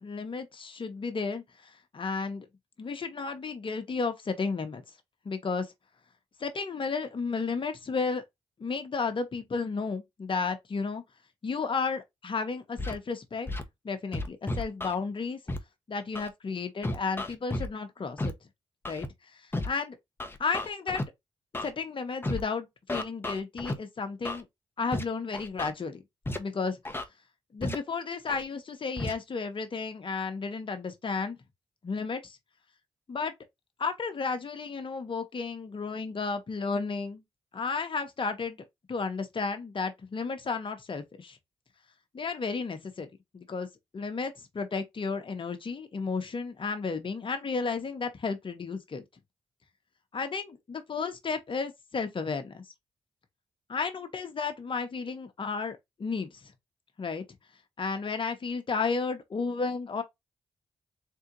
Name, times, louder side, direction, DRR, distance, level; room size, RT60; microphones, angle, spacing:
voice 1, 0.0-2.5 2.8-4.8 5.2-5.7 6.4-8.2 8.6-11.0 11.4-13.5 13.8-15.4 15.9-18.3 18.9-19.1 19.3-20.0 20.4-21.0 21.6-24.4 24.8-26.0 26.4-26.8 27.5-31.4 31.8-32.4 33.1-33.3 33.8-37.2 37.5-41.4 42.1-43.1 43.3-43.7 43.9-49.0 50.1-52.7 53.7-56.4 57.0-57.2 57.8-60.0, left 4 dB, 50° left, 1.3 m, -33 dB
Scratching (performance technique), 12.8-12.9 13.5-13.6 14.1-14.9 15.5-15.6 16.1-16.3 16.8-17.7 18.2-18.3 18.8-19.1 19.5-19.7 20.2-21.0 21.5-21.7 22.2-22.4 22.9-23.7 24.2-24.4 24.9-25.0 25.3-25.7 26.2-26.4 26.8-27.0 27.6-27.7 28.3-28.4 29.0-29.1, left 1 dB, 20° left, 1.1 m, -32 dB
3.9 x 3.4 x 3.0 m
supercardioid pair, 45°, 11 cm